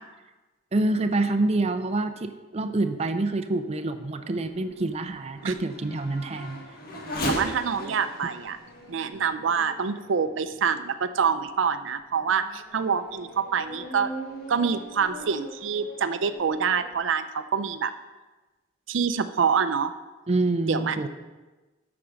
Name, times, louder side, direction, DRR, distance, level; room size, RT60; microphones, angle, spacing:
voice 1, 0.7-6.6 20.3-21.1, right 2 dB, 35° right, 8 dB, 0.5 m, -26 dB
Race car auto racing / Accelerating revving vroom, 2.9-10.9 11.5-11.6 12.2-17.0, equal, 50° left, 1.5 m, -39 dB
voice 2, 7.3-8.6 8.9-14.1 14.5-17.9 18.9-19.9 20.7-21.1, right 6 dB, 80° right, 11 dB, 0.5 m, -26 dB
8.7 x 5.9 x 6.4 m, 1.2 s
head